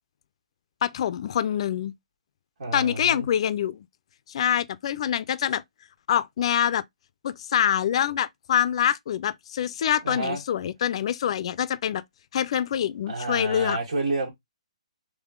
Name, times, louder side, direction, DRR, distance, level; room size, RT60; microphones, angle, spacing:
voice 1, 0.8-1.9 2.7-3.9 4.3-5.6 6.1-6.8 7.2-12.0 12.3-13.8, left 9 dB, 55° left, 0.4 m, -25 dB
voice 2, 2.6-3.3 10.0-10.4 13.1-14.3, right 2 dB, 70° right, 1.8 m, -29 dB
3.6 x 3.2 x 3.6 m
hypercardioid pair, 145°, 4 cm